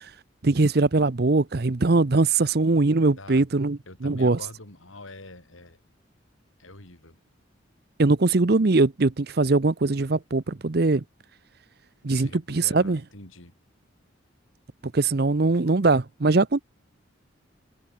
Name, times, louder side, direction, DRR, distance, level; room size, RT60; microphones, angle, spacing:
voice 1, 0.4-4.4 8.0-11.0 12.0-13.0 14.9-16.6, right 3 dB, 50° right, 0.7 m, -21 dB
voice 2, 3.9-5.8 6.6-7.2 12.1-13.5, left 2 dB, 85° left, 6.1 m, -45 dB
head